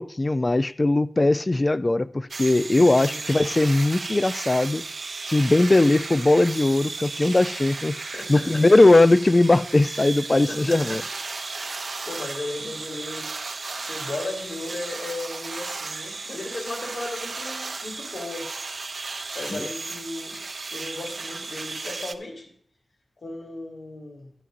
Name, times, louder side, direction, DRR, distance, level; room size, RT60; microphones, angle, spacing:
voice 1, 0.0-4.8 5.3-8.0 8.3-11.0 19.5-19.7, left 2 dB, 30° left, 14 dB, 0.4 m, -19 dB
sound 1, 2.3-22.1, right 3 dB, 60° right, 0.6 m, -35 dB
voice 2, 2.8-3.2 8.1-8.8 10.5-11.0 11.5-13.3 13.8-18.5 19.3-20.4 20.7-22.5 23.2-24.3, left 2 dB, 75° left, -2 dB, 3.5 m, -36 dB
11.0 x 11.0 x 2.6 m, 0.63 s
wide cardioid pair, 75°, 0 cm